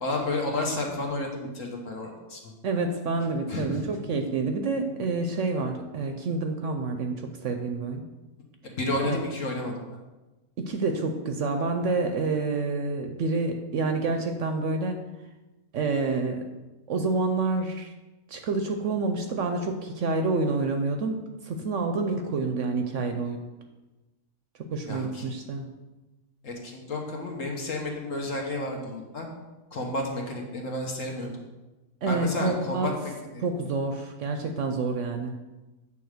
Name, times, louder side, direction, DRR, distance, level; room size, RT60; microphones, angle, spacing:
voice 1, 0.0-2.4 3.5-3.8 8.6-9.7 24.9-25.3 26.4-29.3 29.7-31.3 32.1-33.4, left 2 dB, 60° left, 0 dB, 1.6 m, -31 dB
voice 2, 2.6-8.0 9.0-9.2 10.6-15.0 15.7-16.5 16.9-17.9 18.3-23.5 24.7-25.7 32.0-32.9 33.4-35.4, right 3 dB, 65° right, 5 dB, 0.9 m, -28 dB
8.6 x 3.6 x 6.5 m, 1.1 s
omnidirectional pair, 1.6 m